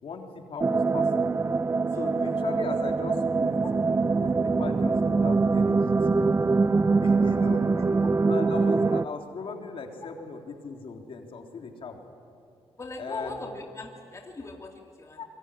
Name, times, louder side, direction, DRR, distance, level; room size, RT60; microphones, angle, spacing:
voice 1, 0.0-1.3 1.9-3.6 4.2-6.3 7.0-7.6 8.3-12.0 13.0-13.4 15.2-15.3, left 4 dB, 55° left, 3 dB, 3.5 m, -38 dB
sound 1, 0.6-9.0, right 4 dB, 25° right, 0.6 m, -23 dB
voice 2, 7.6-8.1 12.8-15.2, left 3 dB, 25° left, 2 dB, 2.5 m, -40 dB
25.5 x 23.0 x 10.0 m, 2.5 s
cardioid pair, 90°, 11 cm